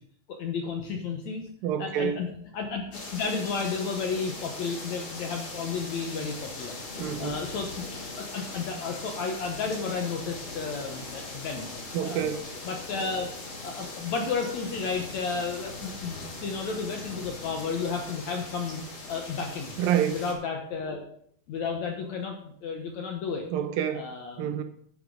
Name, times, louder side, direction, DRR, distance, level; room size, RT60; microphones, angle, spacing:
voice 1, 0.3-1.4 1.8-6.8 7.2-7.8 8.2-11.7 12.0-12.3 12.6-13.3 13.6-18.8 19.1-19.7 20.1-21.0 21.5-23.5 23.9-24.5, left 5 dB, 65° left, 1.8 m, -32 dB
voice 2, 1.6-2.2 7.0-7.3 11.9-12.5 19.8-20.1 23.5-24.1 24.4-24.6, right 9 dB, 80° right, 2.3 m, -27 dB
sound 1, 2.9-20.3, left 2 dB, 35° left, 2.9 m, -40 dB
10.5 x 10.5 x 3.8 m
omnidirectional pair, 4.4 m